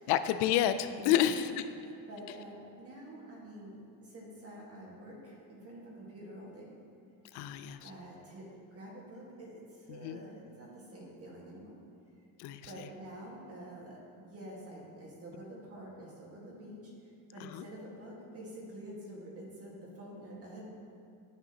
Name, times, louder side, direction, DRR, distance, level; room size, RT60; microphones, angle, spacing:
voice 1, 0.1-1.5 7.3-7.9 9.9-10.2 12.4-12.9 17.4-17.7, left 11 dB, 90° left, 12 dB, 0.5 m, -30 dB
voice 2, 0.9-1.3 1.7-1.8 2.1-6.7 7.8-11.7 12.6-16.9 17.3-20.7, right 1 dB, 35° right, -3 dB, 1.7 m, -47 dB
11.0 x 6.2 x 2.9 m, 2.7 s
cardioid pair, 130°, 39 cm